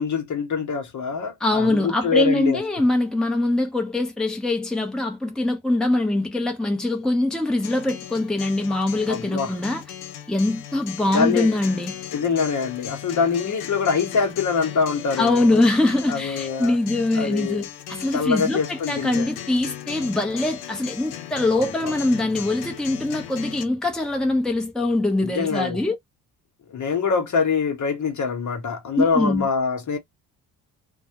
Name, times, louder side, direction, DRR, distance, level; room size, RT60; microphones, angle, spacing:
voice 1, 0.0-2.6 9.1-9.5 11.1-11.5 12.1-15.6 16.1-16.8 17.2-17.6 18.1-19.3 21.5-21.6 25.2-25.8 26.7-30.0, left 5 dB, 45° left, 0.9 m, -24 dB
voice 2, 1.4-9.8 10.3-12.0 15.2-25.9 29.0-29.5, left 2 dB, ahead, 0.8 m, -23 dB
Acoustic guitar, 7.6-23.6, left 11 dB, 90° left, 0.6 m, -37 dB
2.1 x 2.1 x 2.8 m
hypercardioid pair, 50°, 43 cm